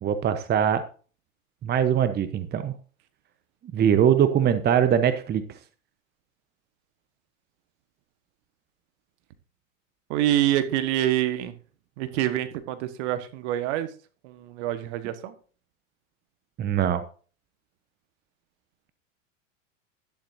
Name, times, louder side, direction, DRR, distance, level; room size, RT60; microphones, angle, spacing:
voice 1, 0.0-0.8 1.6-2.7 3.7-5.4 16.6-17.0, right 9 dB, 25° right, 0.9 m, -22 dB
voice 2, 10.1-11.6 12.0-13.9 14.2-15.3, right 13 dB, 55° right, 1.5 m, -26 dB
11.5 x 11.0 x 2.7 m
hypercardioid pair, 100°, 40 cm